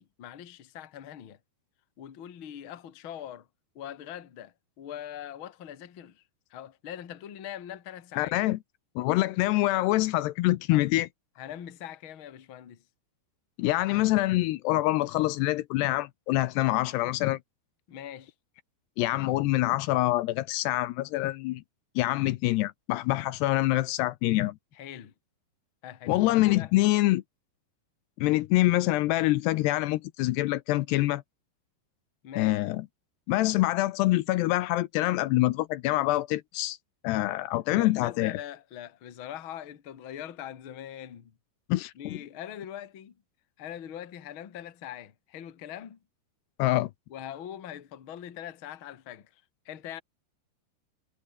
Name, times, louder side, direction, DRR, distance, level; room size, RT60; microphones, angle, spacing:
voice 1, 0.0-1.4 2.0-3.5 3.7-6.2 6.5-8.3 10.7-10.8 11.4-12.8 17.9-18.3 24.7-25.1 25.8-26.7 32.2-32.6 37.7-41.4 42.0-43.2 43.6-46.0 47.1-50.0, left 10 dB, 45° left, 1.9 m, -42 dB
voice 2, 8.2-8.6 9.0-11.1 13.6-17.4 19.0-21.6 22.0-24.6 26.1-27.2 28.2-31.2 32.4-32.8 33.3-36.8 37.0-38.4 41.7-42.2 46.6-46.9, left 17 dB, 80° left, 2.8 m, -25 dB
omnidirectional pair, 4.9 m